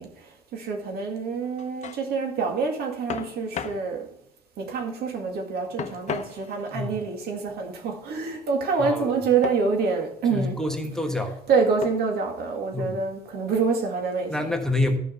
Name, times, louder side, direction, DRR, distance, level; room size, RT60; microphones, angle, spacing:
voice 1, 0.0-4.1 4.6-10.6 11.5-14.3, right 5 dB, 70° right, 2.2 m, -26 dB
sound 1, 1.4-2.0 3.1-3.9 5.8-6.8 9.4-9.7 10.4-10.9 11.8-12.2, left 8 dB, 45° left, 0.9 m, -35 dB
voice 2, 8.8-9.2 10.3-11.4 12.7-13.0 14.3-15.0, left 2 dB, 5° left, 1.3 m, -27 dB
11.5 x 5.6 x 6.8 m
cardioid pair, 110°, 17 cm